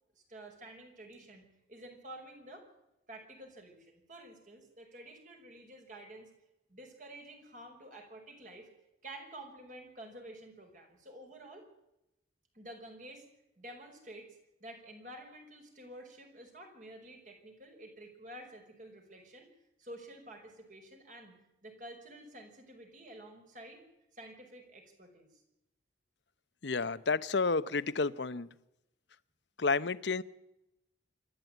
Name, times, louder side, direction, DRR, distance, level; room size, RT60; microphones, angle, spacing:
voice 1, 0.2-2.6 3.1-6.3 6.7-8.7 9.0-11.6 12.5-13.2 13.6-14.3 14.6-19.5 19.8-23.8 24.1-25.4, right 1 dB, 45° right, 5.6 m, -50 dB
voice 2, 26.6-28.5 29.6-30.2, left 4 dB, 70° left, 0.8 m, -30 dB
26.5 x 12.5 x 9.1 m
head